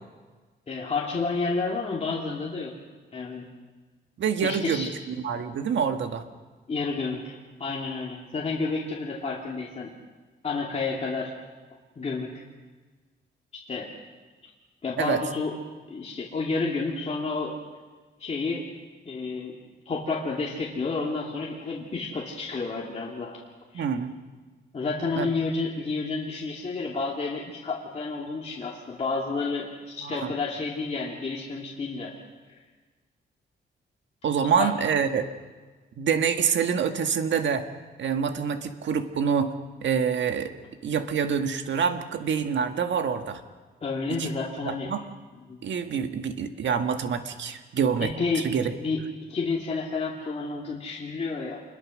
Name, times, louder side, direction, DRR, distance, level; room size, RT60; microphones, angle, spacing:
voice 1, 0.7-2.7 3.1-3.5 4.4-4.9 6.7-9.9 10.4-11.3 12.0-12.3 13.7-13.9 14.8-15.5 15.9-17.5 18.2-18.6 19.1-19.5 19.9-23.4 23.7-23.8 24.7-32.1 34.6-34.7 43.8-44.9 45.5-45.6 48.0-48.5 48.8-49.0 49.3-51.6, left 4 dB, 30° left, -3 dB, 2.7 m, -30 dB
voice 2, 4.2-6.2 15.0-15.2 23.7-24.1 25.2-25.3 30.0-30.3 34.2-35.3 36.0-37.7 38.0-39.5 39.8-40.5 40.8-43.4 44.2-44.3 44.6-45.0 45.6-48.7, right 7 dB, 70° right, 7 dB, 1.8 m, -26 dB
27.0 x 22.0 x 6.4 m, 1.3 s
wide cardioid pair, 165°, 20 cm